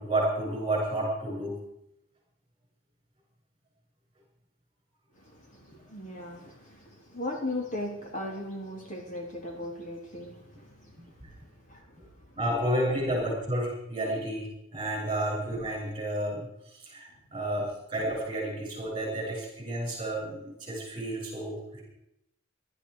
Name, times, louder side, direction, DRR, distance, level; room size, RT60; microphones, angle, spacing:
voice 1, 0.0-1.6 12.4-21.8, right 1 dB, 20° right, -2 dB, 6.9 m, -31 dB
voice 2, 5.2-11.0 11.3-12.0 12.9-13.0, left 1 dB, 35° left, 0 dB, 3.2 m, -38 dB
18.0 x 12.0 x 4.8 m, 0.80 s
head